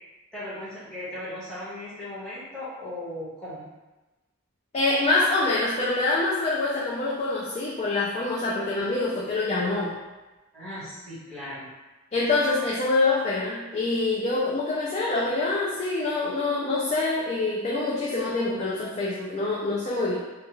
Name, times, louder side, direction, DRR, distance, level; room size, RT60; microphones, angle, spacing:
voice 1, 0.3-3.7 10.5-11.7, left 1 dB, 5° left, -12 dB, 1.1 m, -37 dB
voice 2, 4.7-9.9 12.1-20.2, left 2 dB, 30° left, -6 dB, 0.3 m, -25 dB
2.3 x 2.3 x 2.9 m, 1.1 s
head